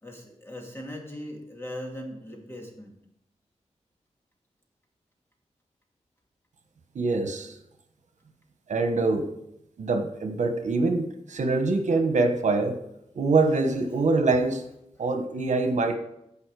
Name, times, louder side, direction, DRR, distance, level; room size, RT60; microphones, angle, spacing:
voice 1, 0.0-3.0 15.0-15.1, left 1 dB, 20° left, 0 dB, 2.4 m, -39 dB
voice 2, 6.9-7.6 8.7-9.3 9.8-12.8 13.1-14.7 15.0-16.0, right 3 dB, 80° right, 6 dB, 1.2 m, -24 dB
15.5 x 5.4 x 4.8 m, 0.79 s
wide cardioid pair, 115°, 12 cm